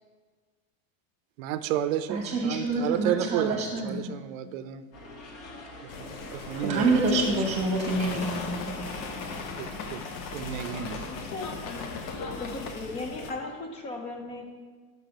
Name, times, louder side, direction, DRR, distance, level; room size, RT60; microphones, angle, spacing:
voice 1, 1.4-4.9 5.8-7.6 9.6-10.0 10.3-11.0, right 11 dB, 70° right, 12 dB, 0.6 m, -32 dB
voice 2, 2.1-4.1 6.5-8.8, right 2 dB, 15° right, 2 dB, 1.2 m, -27 dB
sound 1, 4.9-10.0, left 1 dB, 40° left, 1.1 m, -45 dB
sound 2, 5.9-13.3, left 4 dB, 80° left, 1.0 m, -37 dB
voice 3, 10.9-14.5, left 3 dB, 15° left, 4 dB, 0.3 m, -38 dB
6.0 x 5.5 x 5.2 m, 1.5 s
supercardioid pair, 155°, 41 cm